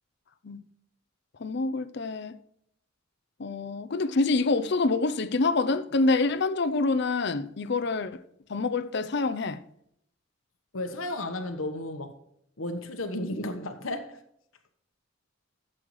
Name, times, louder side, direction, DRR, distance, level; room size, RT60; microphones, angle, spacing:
voice 1, 1.4-2.3 3.4-8.2 8.5-9.6, left 3 dB, 55° left, 0.6 m, -26 dB
voice 2, 10.7-12.1 12.6-14.2, left 1 dB, 90° left, 1.2 m, -33 dB
13.5 x 7.8 x 3.2 m
head